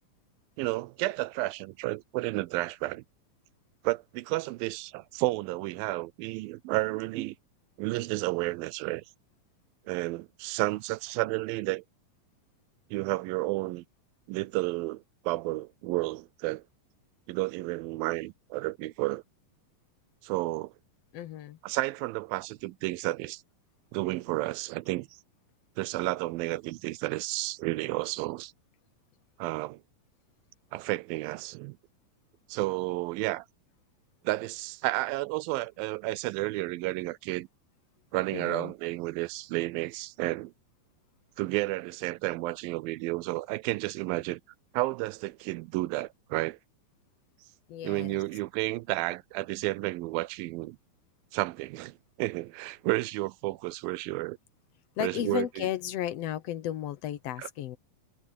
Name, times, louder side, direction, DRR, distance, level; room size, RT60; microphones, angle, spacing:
voice 1, 0.6-3.0 3.8-7.4 7.8-9.0 9.9-11.8 12.9-13.8 14.3-16.6 17.3-19.2 20.2-20.7 21.6-23.4 23.9-25.1 25.8-28.5 29.4-29.8 30.7-31.8 32.5-33.5 34.2-37.5 38.1-40.5 41.4-44.4 44.7-46.6 47.8-50.8 51.3-54.4 55.0-55.7 57.4-57.5, right 20 dB, 85° right, 2.4 m, -31 dB
voice 2, 21.1-21.6 38.3-38.7 47.7-48.2 55.0-57.8, left 11 dB, 70° left, 1.5 m, -34 dB
omnidirectional pair, 4.1 m